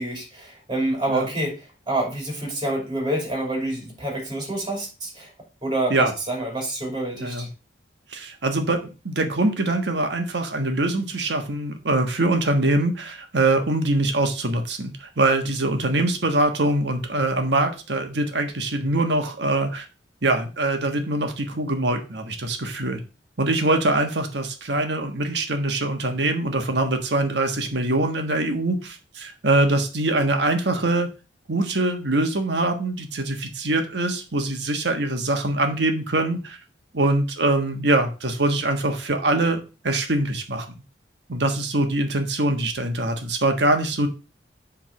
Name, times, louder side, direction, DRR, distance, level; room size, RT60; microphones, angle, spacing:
voice 1, 0.0-5.3 5.6-7.5, right 1 dB, 25° right, 1 dB, 2.9 m, -27 dB
voice 2, 8.1-19.8 20.2-23.0 23.4-31.1 31.5-36.6 36.9-40.7 41.3-44.1, right 2 dB, 65° right, 5 dB, 1.4 m, -23 dB
7.7 x 3.8 x 5.7 m, 0.32 s
head